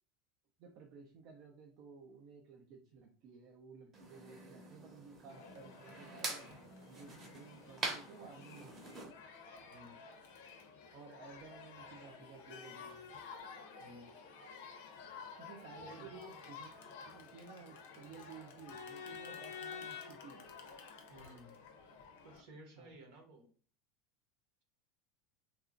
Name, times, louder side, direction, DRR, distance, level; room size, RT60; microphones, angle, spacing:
voice 1, 0.6-9.0 10.9-13.0 15.1-20.5 22.8-23.0, right 5 dB, 50° right, 1 dB, 0.5 m, -55 dB
sound 1, 3.9-9.1, right 2 dB, 30° right, 0.9 m, -45 dB
Crowd, 5.3-22.4, left 5 dB, 75° left, 0.6 m, -51 dB
voice 2, 9.7-10.0 13.8-14.2 15.8-16.1 21.1-21.6 22.2-23.5, right 2 dB, 75° right, 2 dB, 1.0 m, -54 dB
2.9 x 2.3 x 2.5 m, 0.42 s
supercardioid pair, 130°, 0 cm